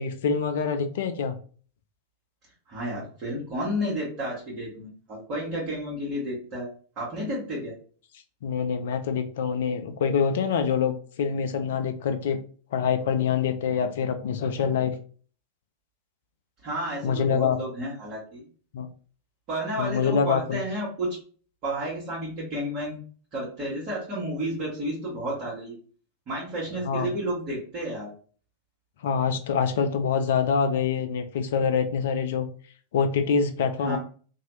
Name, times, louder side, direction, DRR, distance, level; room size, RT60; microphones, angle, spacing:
voice 1, 0.0-1.4 8.4-12.4 12.7-15.0 17.0-17.6 18.7-18.9 19.8-20.6 26.8-27.1 29.0-32.5 32.9-34.0, left 6 dB, 55° left, 7 dB, 0.4 m, -25 dB
voice 2, 2.7-7.7 16.6-18.4 19.5-21.2 21.6-23.0 23.3-25.7 26.3-28.1 33.8-34.0, equal, 35° right, -7 dB, 1.3 m, -31 dB
2.7 x 2.3 x 3.0 m, 0.42 s
figure-of-eight pair, 90°, 0 cm